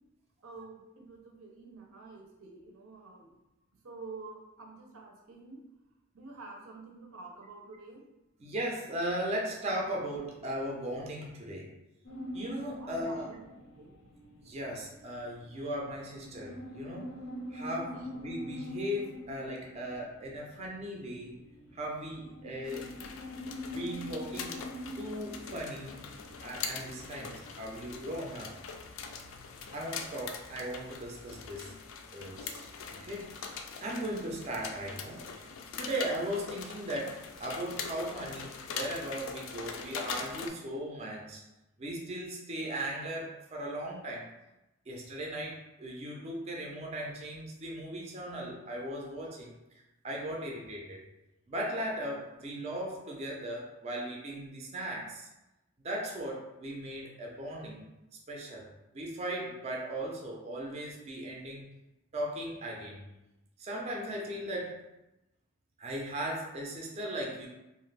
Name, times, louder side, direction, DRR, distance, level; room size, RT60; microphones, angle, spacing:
voice 1, 0.4-3.3 3.8-5.6 6.1-8.0 9.5-9.6 12.8-14.0 17.9-18.1, right 3 dB, 85° right, 0 dB, 0.6 m, -49 dB
voice 2, 8.4-11.7 12.3-13.3 14.4-17.1 17.5-21.4 21.7-22.9 23.7-24.6 25.0-26.0 26.4-28.6 29.7-31.7 32.1-32.7 33.0-33.3 33.8-35.2 35.8-41.4 41.8-44.3 44.9-49.5 50.0-51.0 51.5-55.3 55.8-57.8 58.3-58.7 58.9-61.7 62.1-63.0 63.6-64.8 65.8-67.5, right 1 dB, 30° right, -2 dB, 0.4 m, -37 dB
sound 1, 12.0-27.5, left 1 dB, 90° left, 0.7 m, -44 dB
sound 2, 22.6-40.5, left 5 dB, 65° left, 0.3 m, -42 dB
2.5 x 2.4 x 3.2 m, 0.95 s
head